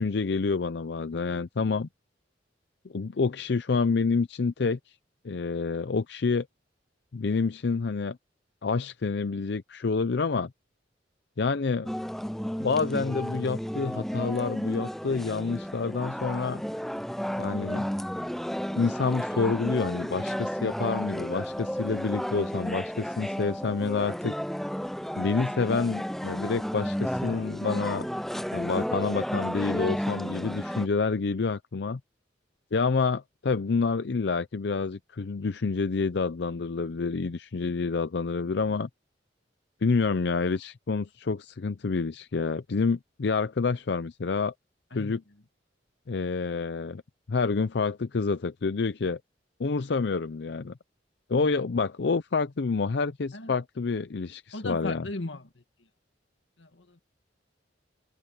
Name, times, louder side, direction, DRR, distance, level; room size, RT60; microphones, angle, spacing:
voice 1, 0.0-1.9 2.9-4.8 5.2-6.5 7.1-8.2 8.6-10.5 11.4-11.9 12.6-16.6 17.4-17.9 18.7-24.4 25.2-28.1 28.5-32.0 32.7-38.9 39.8-44.5 44.9-45.2 46.1-47.0 47.3-49.2 49.6-50.7 51.3-55.1, left 4 dB, 65° left, 0.5 m, -28 dB
sound 1, 11.9-30.9, equal, ahead, 0.6 m, -32 dB
voice 2, 54.5-55.6 56.6-57.0, left 2 dB, 85° left, 1.9 m, -37 dB
head